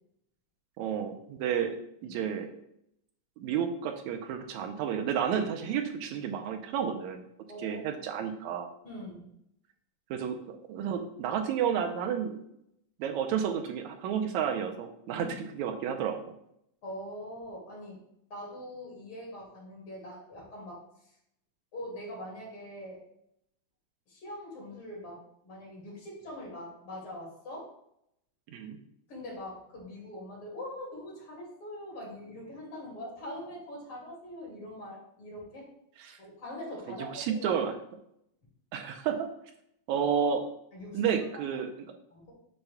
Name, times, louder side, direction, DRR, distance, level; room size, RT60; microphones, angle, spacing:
voice 1, 0.8-2.5 3.4-7.2 7.6-8.7 10.1-12.4 13.0-16.2 28.5-28.8 36.0-36.2 36.9-37.7 38.7-39.3 39.9-40.4 40.9-41.7, right 8 dB, 85° right, 6 dB, 2.0 m, -31 dB
voice 2, 8.8-9.3 15.2-15.3 16.8-18.0 18.3-20.8 21.7-23.0 24.1-27.7 29.1-35.7 36.2-37.6 40.7-41.0 41.3-41.5 42.1-42.3, left 1 dB, 50° left, -3 dB, 3.1 m, -43 dB
8.7 x 5.6 x 2.3 m, 0.74 s
omnidirectional pair, 3.4 m